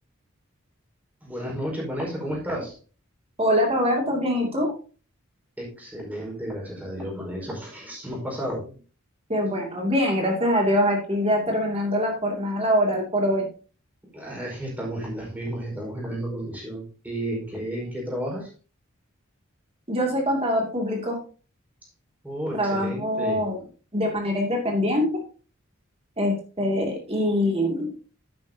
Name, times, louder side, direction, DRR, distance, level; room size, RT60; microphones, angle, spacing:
voice 1, 1.2-2.8 5.6-8.8 14.1-18.5 22.2-23.5, equal, 10° right, -3 dB, 5.2 m, -32 dB
voice 2, 3.4-4.7 9.3-13.5 19.9-21.2 22.5-23.6 23.9-25.1 26.2-27.9, equal, 30° right, 1 dB, 2.6 m, -24 dB
11.0 x 9.4 x 2.9 m, 0.36 s
head